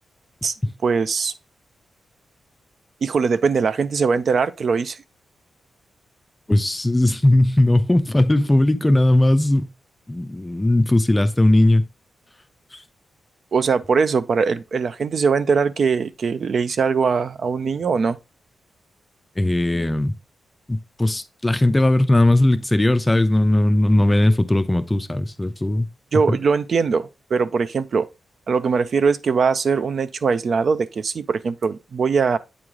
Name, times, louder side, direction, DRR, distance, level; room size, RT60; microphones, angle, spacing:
voice 1, 0.8-1.3 3.0-5.0 13.5-18.2 26.1-28.1 28.5-32.4, right 5 dB, 50° right, 0.4 m, -21 dB
voice 2, 6.5-9.7 10.1-11.8 12.7-12.8 19.4-20.1 20.7-25.9 26.3-26.4, left 1 dB, 10° left, 0.4 m, -18 dB
8.6 x 3.2 x 3.5 m
wide cardioid pair, 135°, 0 cm